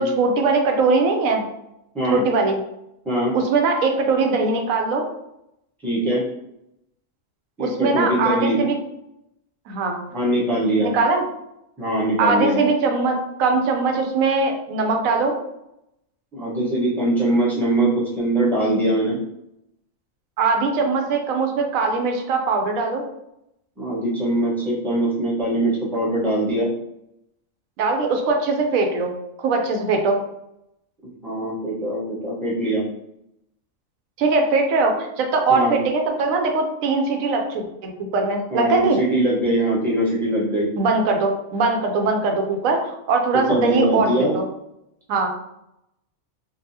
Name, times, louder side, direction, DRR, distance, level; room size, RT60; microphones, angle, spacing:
voice 1, 0.0-1.4 2.1-2.6 3.3-5.0 7.6-8.8 9.7-10.0 10.8-11.2 12.2-15.3 20.4-23.0 27.8-29.1 29.4-30.2 34.2-39.0 40.8-42.8 43.1-44.5 45.1-45.3, right 3 dB, 85° right, 3 dB, 1.0 m, -21 dB
voice 2, 5.8-6.2 7.6-8.6 10.1-10.9 11.8-12.6 16.3-19.2 23.8-26.7 31.2-32.8 35.5-35.8 38.5-40.7 43.3-44.3, right 1 dB, ahead, -8 dB, 0.9 m, -22 dB
3.8 x 2.3 x 2.7 m, 0.83 s
omnidirectional pair, 1.4 m